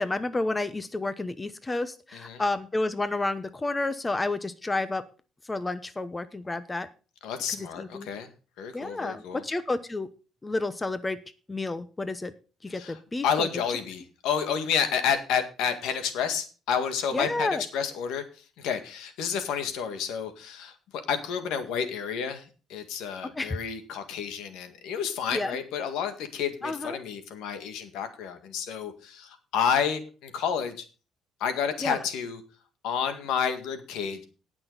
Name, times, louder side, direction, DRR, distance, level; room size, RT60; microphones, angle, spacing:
voice 1, 0.0-5.0 5.5-6.9 7.5-8.1 8.7-10.1 10.4-11.2 11.5-12.3 12.6-13.5 17.1-17.6 23.3-23.6 25.3-25.6 26.6-27.0 31.8-32.0, left 2 dB, 15° left, 13 dB, 0.9 m, -30 dB
voice 2, 7.2-8.3 8.6-9.4 12.7-18.2 18.6-30.8 31.4-32.4 32.8-34.2, left 7 dB, 85° left, 8 dB, 1.8 m, -30 dB
18.0 x 6.1 x 4.0 m, 0.35 s
cardioid pair, 110°, 0 cm